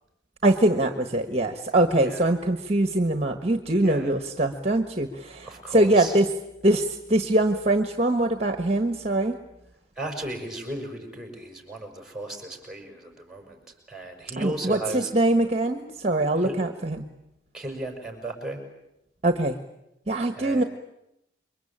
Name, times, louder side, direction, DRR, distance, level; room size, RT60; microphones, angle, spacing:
voice 1, 0.4-6.3 6.6-9.4 14.4-17.0 19.2-19.6 20.1-20.6, right 1 dB, 35° right, 7 dB, 1.4 m, -23 dB
voice 2, 1.9-2.3 3.8-4.1 5.4-6.2 9.9-15.1 16.4-16.6 17.5-18.6 20.3-20.7, right 1 dB, ahead, 3 dB, 6.3 m, -35 dB
28.5 x 23.5 x 8.8 m, 0.86 s
head